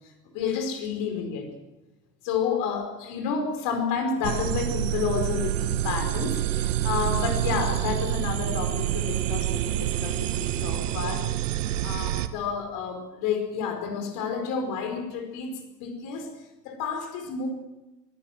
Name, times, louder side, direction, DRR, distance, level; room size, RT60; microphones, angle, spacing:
voice 1, 0.3-1.5 2.2-11.3 11.8-15.5 15.8-16.3 16.6-17.5, left 6 dB, 40° left, 4 dB, 5.0 m, -30 dB
sound 1, 4.2-12.3, right 13 dB, 50° right, 1.5 m, -27 dB
23.0 x 17.0 x 7.8 m, 1.0 s
figure-of-eight pair, 90°, 49 cm